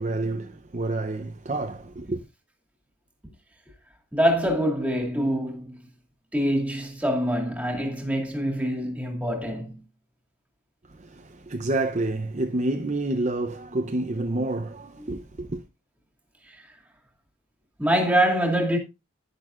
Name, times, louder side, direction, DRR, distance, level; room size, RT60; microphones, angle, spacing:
voice 1, 0.0-2.2 10.9-15.6, right 2 dB, 35° right, 0.7 m, -29 dB
voice 2, 4.1-5.8 6.3-9.8 15.0-15.1 16.4-16.6 17.8-18.8, equal, 5° right, 2.3 m, -25 dB
10.5 x 10.5 x 2.5 m
head